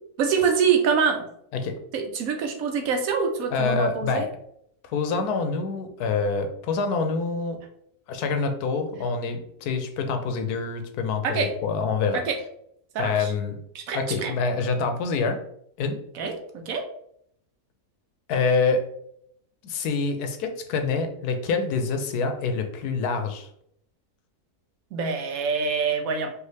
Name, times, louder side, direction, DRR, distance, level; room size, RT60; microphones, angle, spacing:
voice 1, 0.2-1.3 1.9-4.3 11.2-11.5 12.3-12.4 12.9-13.3 13.7-14.3 16.1-16.9 24.9-26.3, right 6 dB, 70° right, 5 dB, 1.0 m, -25 dB
voice 2, 3.5-4.3 4.8-7.6 8.1-12.2 13.0-13.6 13.9-15.4 15.8-16.0 18.3-18.8 19.6-23.5, left 4 dB, 85° left, 6 dB, 1.2 m, -26 dB
4.7 x 2.5 x 3.2 m, 0.70 s
omnidirectional pair, 1.6 m